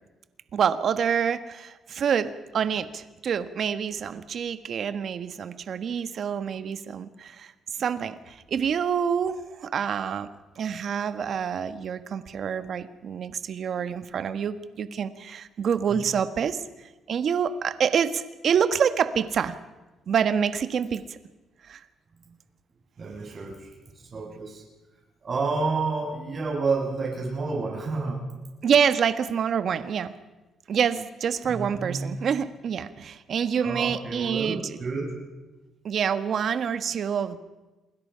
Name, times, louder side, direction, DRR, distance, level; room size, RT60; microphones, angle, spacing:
voice 1, 0.5-7.5 7.8-10.3 10.6-19.5 20.1-21.2 21.7-21.8 28.6-30.1 30.7-34.8 35.8-37.4, right 7 dB, 60° right, 11 dB, 1.3 m, -27 dB
voice 2, 23.0-23.7 24.1-24.6 25.2-28.2 31.5-32.2 33.6-35.1, right 4 dB, 45° right, -1 dB, 7.4 m, -29 dB
28.0 x 21.0 x 5.7 m, 1.1 s
cardioid pair, 90°, 0 cm